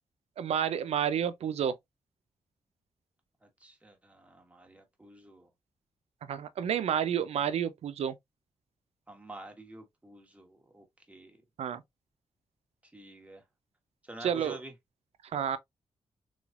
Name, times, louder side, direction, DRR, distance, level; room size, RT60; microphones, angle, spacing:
voice 1, 0.4-1.7 6.3-8.2 11.6-11.8 14.2-14.6 15.3-15.6, right 9 dB, 90° right, 0.5 m, -30 dB
voice 2, 3.4-5.5 9.1-11.4 12.8-13.4 14.0-14.7, right 1 dB, 15° right, 1.3 m, -49 dB
3.8 x 3.1 x 2.4 m
cardioid pair, 95°, 10 cm